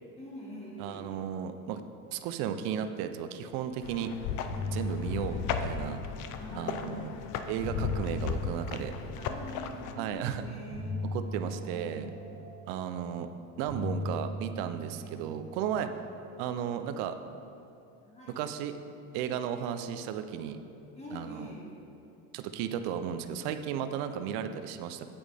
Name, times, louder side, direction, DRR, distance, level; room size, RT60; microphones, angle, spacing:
voice 1, 0.2-1.1 5.1-5.4 6.4-7.2 9.2-11.0 11.4-12.1 14.9-15.2 18.0-18.4 20.9-21.7, left 1 dB, 15° left, -5 dB, 2.0 m, -44 dB
voice 2, 0.8-1.8 2.1-4.1 4.7-6.0 6.5-7.1 7.5-8.9 10.0-10.4 11.1-12.1 12.7-13.3 13.6-15.9 16.4-17.2 18.4-18.7 19.1-20.6 21.1-21.4 22.3-25.1, right 9 dB, 70° right, 9 dB, 0.7 m, -34 dB
sound 1, 3.8-9.9, left 7 dB, 50° left, 0.6 m, -35 dB
sound 2, 3.8-4.0 4.3-6.6 7.3-9.7 10.7-13.2 13.7-16.2, left 1 dB, 45° right, 2.1 m, -39 dB
8.9 x 8.8 x 3.5 m, 2.9 s
cardioid pair, 145°, 41 cm